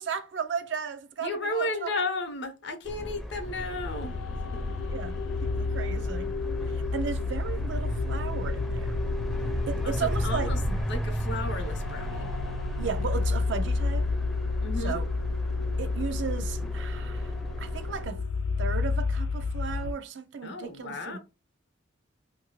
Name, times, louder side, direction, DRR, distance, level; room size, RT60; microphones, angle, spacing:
voice 1, 0.0-1.9 4.9-6.3 6.9-9.0 9.7-10.8 12.8-14.1 14.8-15.1 15.8-17.3 17.6-18.2 18.6-21.2, right 6 dB, 65° right, 0.4 m, -35 dB
voice 2, 1.2-4.7 9.8-10.6 10.9-12.3 14.6-15.0 20.4-21.2, left 2 dB, 60° left, 0.6 m, -34 dB
sound 1, 2.8-18.1, equal, ahead, 0.5 m, -34 dB
sound 2, 3.4-19.9, left 4 dB, 85° left, 0.3 m, -31 dB
2.8 x 2.6 x 3.0 m
head